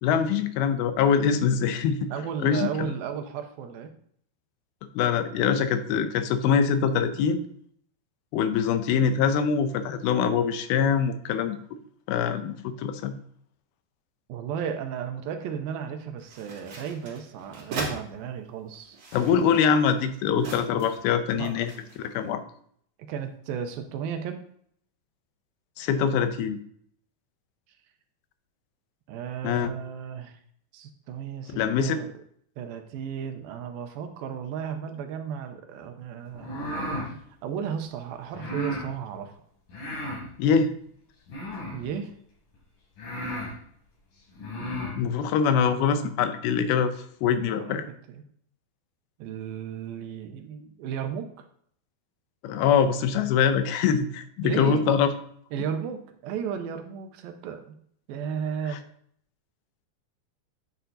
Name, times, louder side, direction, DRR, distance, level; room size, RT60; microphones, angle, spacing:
voice 1, 0.0-2.1 2.4-2.9 5.0-7.4 8.3-11.6 12.1-13.1 19.1-21.7 22.0-22.4 25.8-26.6 29.4-29.7 31.6-32.0 40.4-40.7 44.9-47.9 52.4-55.1, left 7 dB, 85° left, 10 dB, 2.6 m, -24 dB
voice 2, 2.1-3.9 14.3-19.0 21.3-21.7 23.0-24.4 29.1-30.4 30.7-32.1 32.6-36.6 37.4-39.4 41.7-42.1 47.5-48.2 49.2-51.3 54.4-54.9 55.5-57.8 58.1-58.8, right 7 dB, 80° right, 7 dB, 2.4 m, -34 dB
sound 1, 16.2-18.0 18.7-21.1 21.4-22.1, right 4 dB, 55° right, 2.9 m, -39 dB
sound 2, 36.3-37.1 38.3-38.9 39.7-40.3 41.3-41.9 42.5-42.6 43.0-43.5 44.3-45.0, equal, 60° left, 4.3 m, -33 dB
9.1 x 6.5 x 2.8 m, 0.63 s
omnidirectional pair, 4.4 m